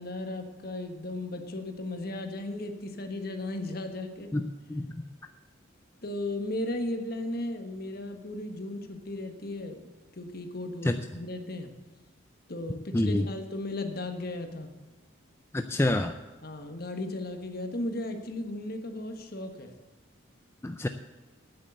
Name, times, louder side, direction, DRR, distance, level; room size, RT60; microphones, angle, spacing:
voice 1, 0.0-4.3 6.0-11.7 12.5-14.7 16.4-19.7, left 1 dB, 50° left, 6 dB, 1.4 m, -36 dB
voice 2, 12.9-13.3 15.5-16.2 20.6-20.9, left 1 dB, 15° left, 7 dB, 0.4 m, -26 dB
9.4 x 8.3 x 8.0 m, 1.3 s
head